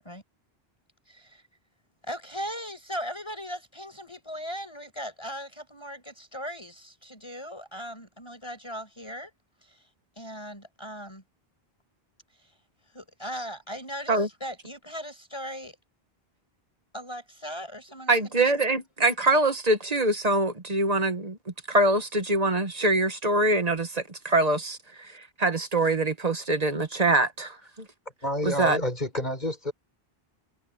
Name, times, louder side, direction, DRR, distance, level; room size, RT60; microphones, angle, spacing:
voice 1, 1.1-1.4 2.0-9.3 9.6-9.9 10.1-11.2 12.3-12.6 12.8-15.8 16.9-18.5, equal, 25° left, 6.5 m, -38 dB
voice 2, 18.1-21.4 21.7-24.8 25.4-27.6 28.6-28.8, right 2 dB, 40° right, 1.4 m, -24 dB
voice 3, 28.2-29.7, left 1 dB, 45° left, 5.7 m, -29 dB
omnidirectional pair, 1.0 m